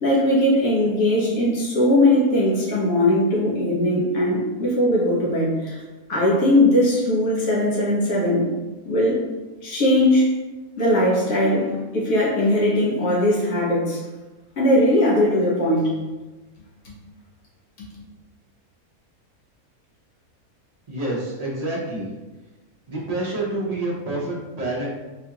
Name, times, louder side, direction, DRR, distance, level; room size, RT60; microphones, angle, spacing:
voice 1, 0.0-5.8 6.1-8.5 8.8-9.2 9.6-10.3 10.8-14.0 14.6-16.0 16.8-16.9 17.8-17.9, left 1 dB, 70° left, -6 dB, 1.5 m, -19 dB
voice 2, 20.9-22.1 22.9-24.9, right 2 dB, 45° right, -4 dB, 0.5 m, -27 dB
4.3 x 2.4 x 2.8 m, 1.2 s
omnidirectional pair, 1.6 m